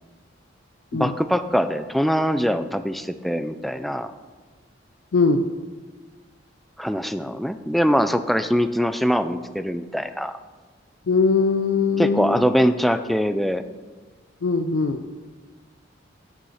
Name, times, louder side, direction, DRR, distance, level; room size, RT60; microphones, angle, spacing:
voice 1, 0.9-4.1 6.8-10.4 12.0-13.6, equal, ahead, 10 dB, 0.3 m, -22 dB
voice 2, 5.1-5.4 11.1-12.4 14.4-15.0, left 4 dB, 75° left, 7 dB, 0.4 m, -21 dB
9.3 x 5.7 x 5.6 m, 1.4 s
head